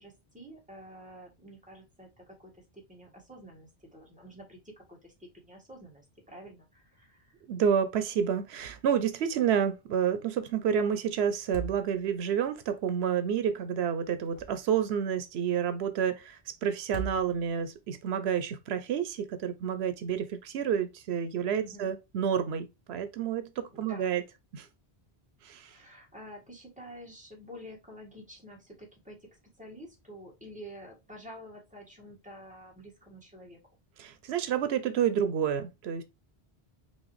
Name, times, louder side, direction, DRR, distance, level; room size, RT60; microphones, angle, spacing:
voice 1, 0.0-7.3 21.6-21.9 23.7-24.1 25.6-29.2 29.6-33.6, equal, 5° right, 1.6 m, -49 dB
voice 2, 7.5-24.2 24.5-24.7 25.4-25.8 34.0-36.0, right 8 dB, 85° right, 0.8 m, -29 dB
sound 1, 8.5-9.0 9.3-9.4 11.3-12.3 14.0-14.9 16.8-17.7, right 6 dB, 80° left, 1.1 m, -41 dB
5.6 x 2.6 x 3.1 m
omnidirectional pair, 1.1 m